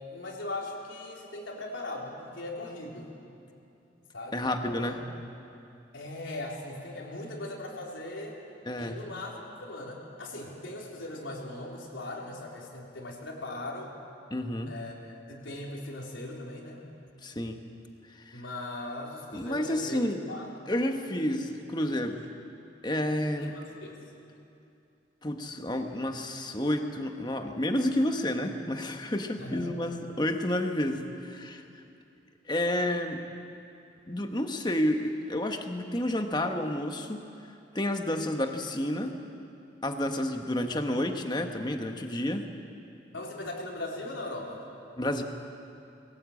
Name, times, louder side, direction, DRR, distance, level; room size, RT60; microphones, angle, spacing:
voice 1, 0.0-3.1 4.1-4.9 5.9-8.4 8.8-9.3 9.6-13.9 14.7-16.9 18.3-20.5 20.8-20.9 23.4-24.0 29.4-29.7 43.1-44.6, left 2 dB, 80° left, -2 dB, 3.7 m, -39 dB
voice 2, 4.3-5.0 8.7-9.0 14.3-14.7 17.2-17.6 18.1-18.4 19.3-20.2 20.7-22.2 22.8-23.5 25.2-31.6 32.5-33.2 34.1-37.2 37.7-39.2 39.8-42.4 45.0-45.2, left 1 dB, 20° left, 5 dB, 1.3 m, -30 dB
21.5 x 17.5 x 8.6 m, 2.7 s
head